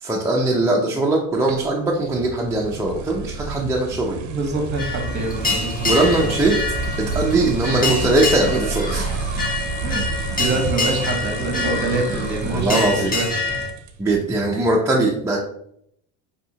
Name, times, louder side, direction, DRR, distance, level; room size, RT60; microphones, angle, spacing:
voice 1, 0.0-4.2 5.8-6.6 7.0-9.1 12.5-13.1 14.0-15.4, right 2 dB, 10° right, -2 dB, 0.4 m, -20 dB
sound 1, 1.5-14.2, right 4 dB, 50° right, 0.6 m, -31 dB
voice 2, 4.0-5.9 6.2-6.3 9.3-9.4 9.8-10.0 10.3-13.3, right 2 dB, 30° right, 3 dB, 1.0 m, -25 dB
sound 2, 4.7-13.7, left 2 dB, 25° left, 1.0 m, -26 dB
5.1 x 2.8 x 2.7 m, 0.71 s
cardioid pair, 125°, 37 cm